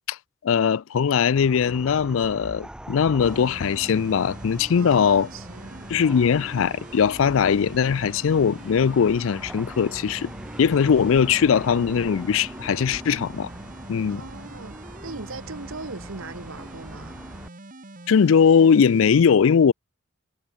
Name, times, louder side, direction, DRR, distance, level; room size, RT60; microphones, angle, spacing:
voice 1, 0.4-5.3 5.9-10.3 10.6-13.5 13.9-14.2 18.1-19.7, left 6 dB, 75° left, 0.4 m, -20 dB
sound 1, 1.4-17.5, right 1 dB, 5° right, 0.3 m, -41 dB
sound 2, 3.2-19.2, right 2 dB, 40° right, 2.6 m, -44 dB
voice 2, 4.7-5.9 14.0-17.2, right 3 dB, 80° right, 1.6 m, -39 dB
head